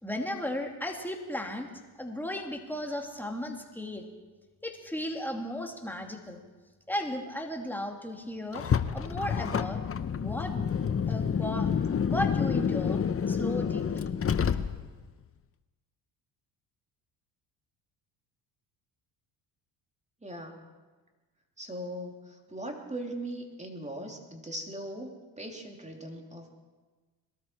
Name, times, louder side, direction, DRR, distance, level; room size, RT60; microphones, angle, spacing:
voice 1, 0.0-1.7 2.0-4.0 4.6-6.4 6.9-8.6 8.9-9.8 10.2-10.7 11.1-11.7 12.0-13.0 13.3-14.1, left 1 dB, 5° left, 2 dB, 2.5 m, -35 dB
Car, 8.5-15.1, left 7 dB, 30° left, 0.8 m, -28 dB
voice 2, 20.2-20.6 21.6-26.5, right 1 dB, 15° right, 2 dB, 3.1 m, -39 dB
21.5 x 13.0 x 4.6 m, 1.3 s
supercardioid pair, 65°, 48 cm